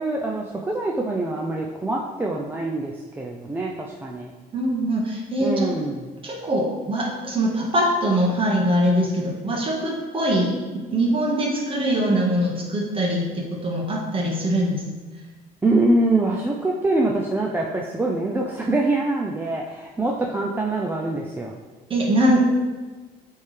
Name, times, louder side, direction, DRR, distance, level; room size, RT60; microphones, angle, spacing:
voice 1, 0.0-4.3 5.4-6.1 15.6-21.5, right 2 dB, 10° right, -2 dB, 0.5 m, -24 dB
voice 2, 4.5-5.7 6.2-14.8 21.9-22.5, right 1 dB, 30° right, -1 dB, 1.5 m, -22 dB
8.6 x 3.6 x 3.3 m, 1.3 s
cardioid pair, 110°, 17 cm